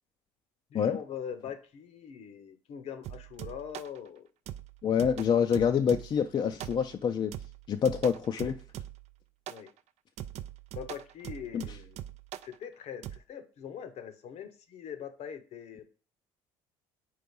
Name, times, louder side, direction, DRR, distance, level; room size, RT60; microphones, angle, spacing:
voice 1, 0.7-4.3 9.5-9.7 10.7-12.0 12.4-15.9, left 8 dB, 60° left, 0.8 m, -42 dB
sound 1, 3.0-4.0 4.5-6.3 6.6-7.0 7.3-9.1 9.5-9.7 10.2-12.5 13.0-13.2, right 12 dB, 60° right, 0.4 m, -42 dB
voice 2, 4.8-7.3 7.7-8.6 11.5-11.6, left 7 dB, 40° left, 0.5 m, -26 dB
4.7 x 4.2 x 5.3 m
hypercardioid pair, 70°, 13 cm